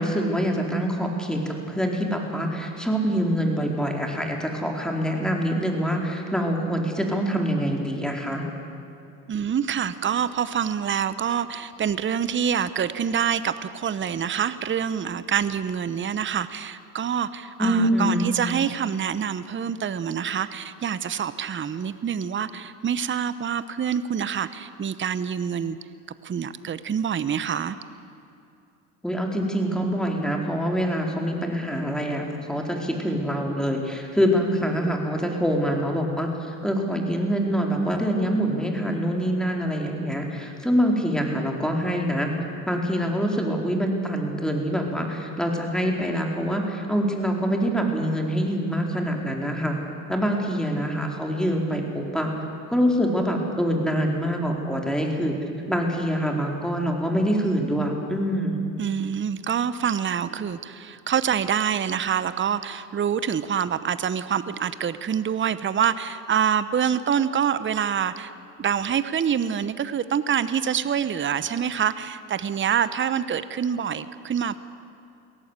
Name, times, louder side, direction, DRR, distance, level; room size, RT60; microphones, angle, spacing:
voice 1, 0.0-8.4 17.6-18.3 29.0-36.3 36.6-42.3 42.7-49.8 50.1-52.3 52.7-55.4 55.7-58.7, equal, ahead, 1 dB, 4.4 m, -25 dB
voice 2, 9.3-25.8 26.2-27.8 58.8-68.3 68.6-74.6, right 8 dB, 30° right, 14 dB, 0.9 m, -26 dB
23.0 x 17.0 x 8.3 m, 2.6 s
hypercardioid pair, 65°, 42 cm